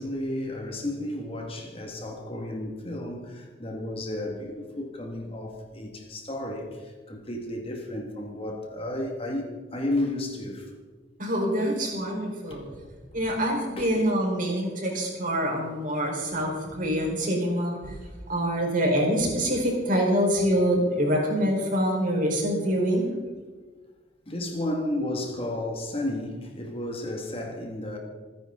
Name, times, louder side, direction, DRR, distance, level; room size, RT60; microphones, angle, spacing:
voice 1, 0.0-10.7 12.5-12.9 13.8-13.9 24.3-28.0, left 1 dB, 30° left, 2.1 m, -33 dB
voice 2, 11.2-12.6 13.1-23.1, equal, 50° right, 4.7 m, -25 dB
28.0 x 10.0 x 3.9 m
head